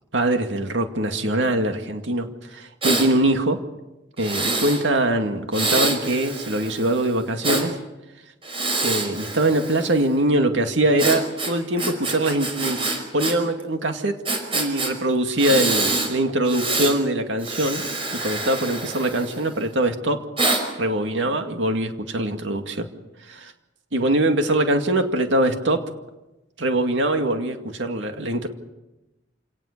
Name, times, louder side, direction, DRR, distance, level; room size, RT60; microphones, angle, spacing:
voice 1, 0.1-2.3 2.8-3.6 4.2-7.7 8.8-12.8 13.1-14.1 14.5-17.8 18.1-20.2 20.8-22.9 23.3-23.5 23.9-25.8 26.6-28.5, right 1 dB, 85° right, 5 dB, 2.3 m, -22 dB
Breathing, 2.8-3.1 4.2-4.8 5.5-7.7 8.4-10.1 11.0-13.3 13.6-13.7 14.3-14.9 15.4-16.1 16.5-17.0 17.4-19.6 20.4-20.6, right 3 dB, 30° right, 5.2 m, -26 dB
27.5 x 18.5 x 6.8 m, 1.0 s
head